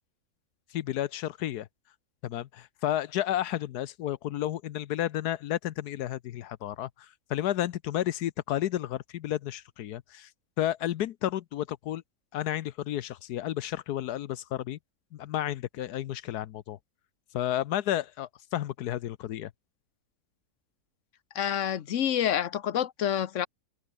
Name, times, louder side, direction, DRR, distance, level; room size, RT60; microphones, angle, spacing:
voice 1, 0.7-1.7 2.2-10.3 10.6-12.0 12.3-14.8 15.1-16.8 17.3-19.5, left 12 dB, 80° left, 1.3 m, -32 dB
voice 2, 21.3-23.5, left 10 dB, 55° left, 1.1 m, -28 dB
omnidirectional pair, 1.7 m